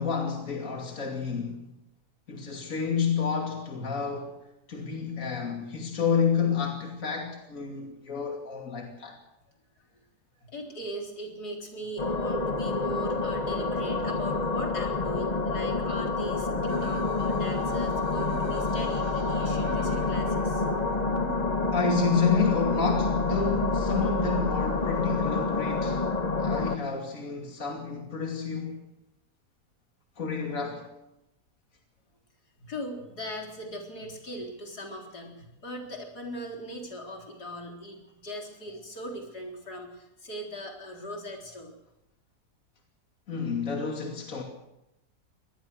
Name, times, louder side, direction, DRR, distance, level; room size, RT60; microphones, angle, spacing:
voice 1, 0.0-1.6 2.3-4.4 4.7-9.2 21.7-26.0 26.4-28.8 30.2-30.9 43.3-44.4, left 5 dB, 55° left, 2.9 m, -29 dB
voice 2, 10.4-20.7 32.6-41.7, equal, 85° left, 4.6 m, -39 dB
sound 1, 12.0-26.8, left 3 dB, 30° left, 1.1 m, -28 dB
sound 2, 16.7-22.7, right 7 dB, 75° right, 1.8 m, -42 dB
24.5 x 19.0 x 6.4 m
omnidirectional pair, 1.7 m